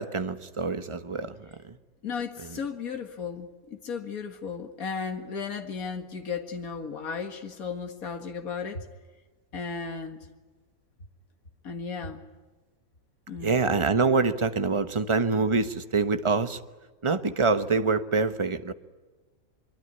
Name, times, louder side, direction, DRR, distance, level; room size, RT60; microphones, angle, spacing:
voice 1, 0.0-1.8 2.5-2.6 13.4-16.6 17.0-18.7, right 4 dB, 20° right, 10 dB, 1.2 m, -25 dB
voice 2, 2.0-8.9 9.5-10.3 11.6-12.2 13.3-13.6, left 5 dB, 80° left, 5 dB, 2.2 m, -35 dB
24.0 x 24.0 x 9.7 m, 1.3 s
omnidirectional pair, 1.5 m